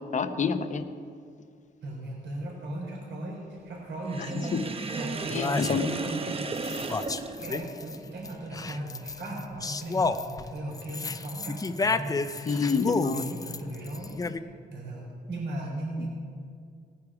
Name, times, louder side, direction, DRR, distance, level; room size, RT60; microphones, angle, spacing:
voice 1, 0.1-0.8 4.2-4.3 4.5-4.6 5.3-5.9 12.5-13.3, left 5 dB, 40° left, 9 dB, 0.7 m, -28 dB
voice 2, 1.8-4.5 4.9-6.7 7.0-12.6 13.1-16.1, right 1 dB, 75° right, -3 dB, 3.8 m, -37 dB
Sink (filling or washing), 4.1-8.0, right 3 dB, 30° right, 0.7 m, -35 dB
sound 1, 4.7-4.8 5.3-6.1 6.6-8.0 8.2-14.4, left 3 dB, 20° left, 0.4 m, -31 dB
18.0 x 9.6 x 4.8 m, 2.3 s
wide cardioid pair, 155°, 18 cm